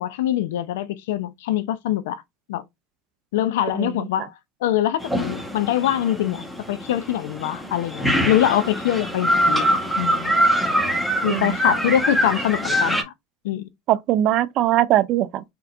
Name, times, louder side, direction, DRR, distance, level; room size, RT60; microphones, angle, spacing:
voice 1, 0.0-2.2 2.5-2.6 3.3-4.3 4.6-10.4 11.2-13.0 13.4-13.6, left 12 dB, 80° left, 0.6 m, -24 dB
sound 1, 5.0-13.0, equal, 5° left, 1.2 m, -23 dB
voice 2, 11.3-11.6 13.9-15.4, right 13 dB, 55° right, 0.5 m, -21 dB
4.3 x 3.7 x 2.5 m
supercardioid pair, 95°, 0 cm